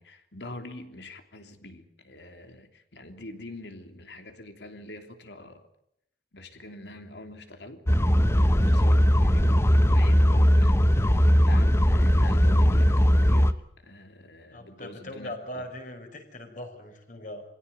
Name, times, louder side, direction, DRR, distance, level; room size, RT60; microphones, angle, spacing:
voice 1, 0.0-5.6 6.3-7.8 8.4-13.5 13.8-15.7, left 2 dB, 75° left, 6 dB, 3.2 m, -44 dB
sound 1, 7.9-13.5, equal, 15° left, 0.9 m, -19 dB
voice 2, 14.5-17.4, left 1 dB, 45° left, 4 dB, 5.5 m, -40 dB
25.5 x 17.0 x 9.6 m, 0.76 s
head